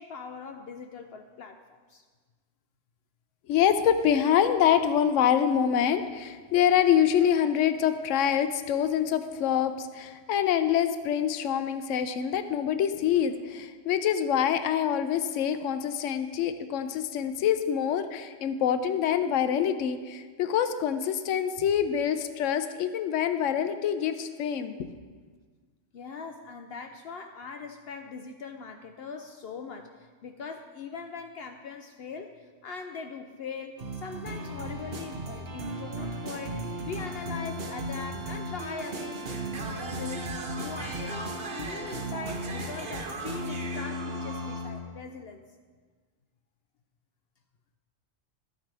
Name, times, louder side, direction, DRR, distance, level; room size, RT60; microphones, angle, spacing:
voice 1, 0.0-1.6 1.9-2.0 25.9-40.2 40.6-45.4, left 5 dB, 65° left, 6 dB, 0.7 m, -41 dB
voice 2, 3.5-24.9, left 9 dB, 85° left, 10 dB, 0.9 m, -25 dB
sound 1, 33.8-44.9, right 1 dB, 55° right, 1.1 m, -35 dB
13.0 x 8.9 x 3.3 m, 1.5 s
omnidirectional pair, 1.3 m